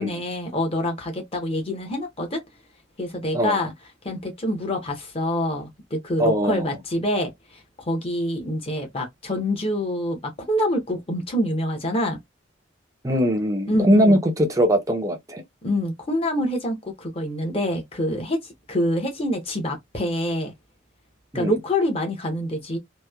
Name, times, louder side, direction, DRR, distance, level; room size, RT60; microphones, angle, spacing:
voice 1, 0.0-2.4 3.0-3.7 4.0-7.6 7.9-12.2 13.7-14.2 15.6-20.5 21.3-22.8, left 1 dB, 30° left, 0.7 m, -26 dB
voice 2, 6.2-6.8 13.0-15.4 21.3-21.6, equal, 15° right, 0.5 m, -21 dB
2.9 x 2.0 x 2.2 m
head